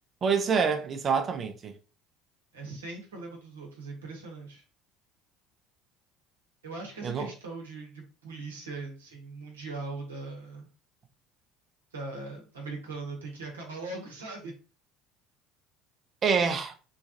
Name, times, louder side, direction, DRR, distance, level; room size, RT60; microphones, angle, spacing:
voice 1, 0.2-1.7 7.0-7.3 16.2-16.7, right 5 dB, 40° right, 0.5 m, -26 dB
voice 2, 2.5-4.6 6.6-10.7 11.9-14.5, right 3 dB, 85° right, 0.9 m, -40 dB
3.1 x 2.3 x 2.6 m
hypercardioid pair, 65°, 0 cm